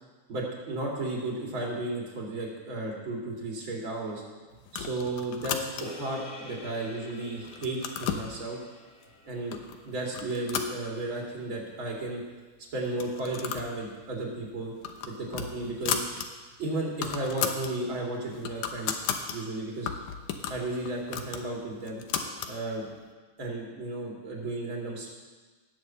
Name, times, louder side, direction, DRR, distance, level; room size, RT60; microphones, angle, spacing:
voice 1, 0.3-4.2 4.7-8.6 9.2-9.6 9.8-12.2 12.7-14.7 15.1-16.0 16.6-19.0 19.3-19.9 20.5-22.0 22.5-22.9 23.4-25.1, right 2 dB, 40° right, -2 dB, 3.2 m, -34 dB
sound 1, 4.7-6.1 6.6-7.1 7.4-8.3 9.0-9.1 9.5-9.8 10.1-11.4 11.7-11.8 12.0-12.1 12.9-13.7 14.0-14.2 14.6-16.3 16.6-16.7 16.9-17.7 18.1-19.4 19.9-22.6, left 8 dB, 85° left, 2.5 m, -34 dB
sound 2, 5.8-10.3, left 1 dB, 25° left, 4.0 m, -47 dB
18.0 x 7.0 x 7.7 m, 1.3 s
omnidirectional pair, 3.5 m